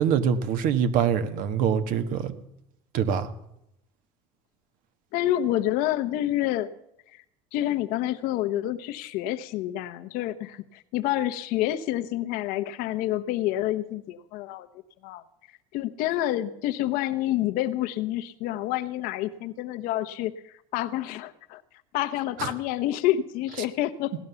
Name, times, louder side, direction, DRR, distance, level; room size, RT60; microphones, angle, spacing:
voice 1, 0.0-2.3 2.9-3.3 22.4-22.5, right 8 dB, 65° right, 10 dB, 1.5 m, -24 dB
voice 2, 5.1-6.7 7.5-14.7 15.0-15.2 15.7-21.6 21.9-24.2, left 13 dB, 70° left, 10 dB, 1.0 m, -28 dB
17.0 x 11.0 x 7.0 m, 0.82 s
cardioid pair, 130°, 15 cm